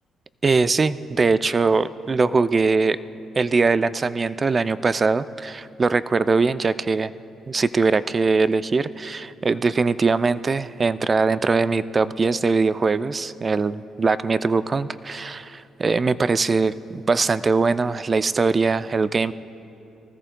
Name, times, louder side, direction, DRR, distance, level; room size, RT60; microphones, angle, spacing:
voice 1, 0.4-3.0 3.4-7.1 7.5-19.3, right 4 dB, 35° right, 15 dB, 0.3 m, -21 dB
20.0 x 14.0 x 2.2 m, 2.9 s
cardioid pair, 90°, 0 cm